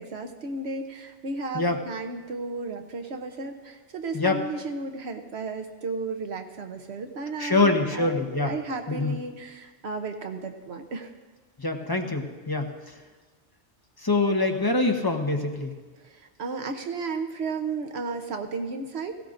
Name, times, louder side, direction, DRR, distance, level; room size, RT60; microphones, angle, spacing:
voice 1, 0.0-8.1 8.4-11.1 16.0-19.2, right 3 dB, 70° right, 5 dB, 1.1 m, -34 dB
voice 2, 7.4-8.5 8.9-9.2 11.6-12.9 14.0-15.7, left 2 dB, 20° left, 3 dB, 1.0 m, -25 dB
18.0 x 16.5 x 2.6 m, 1.3 s
omnidirectional pair, 1.1 m